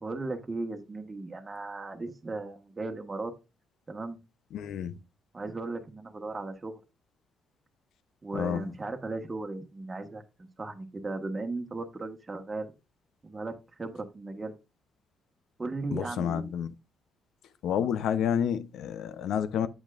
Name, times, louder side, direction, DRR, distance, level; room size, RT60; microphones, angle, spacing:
voice 1, 0.0-3.3 3.9-4.2 5.3-6.8 8.2-12.7 13.2-14.5 15.6-16.5, right 3 dB, 25° right, 1.3 m, -36 dB
voice 2, 4.5-5.0 8.3-8.7 15.9-16.7 17.6-19.7, left 8 dB, 80° left, 0.7 m, -29 dB
8.0 x 7.1 x 2.5 m
cardioid pair, 90°, 0 cm